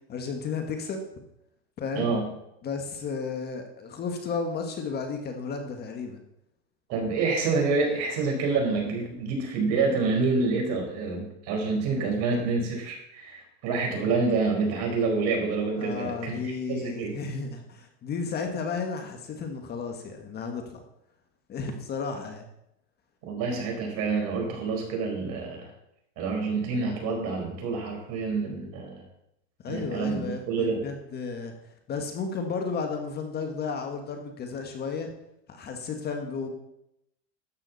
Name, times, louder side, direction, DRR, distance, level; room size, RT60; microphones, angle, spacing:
voice 1, 0.1-1.0 1.8-2.1 2.6-6.2 15.8-20.8 21.5-22.5 29.6-31.5 31.9-35.1 35.5-36.5, left 5 dB, 30° left, 5 dB, 1.6 m, -33 dB
voice 2, 1.9-2.3 6.9-17.1 23.3-25.7 26.2-29.0 29.7-30.8, right 4 dB, 50° right, 2 dB, 4.6 m, -27 dB
13.0 x 8.9 x 4.1 m, 0.81 s
supercardioid pair, 125°, 34 cm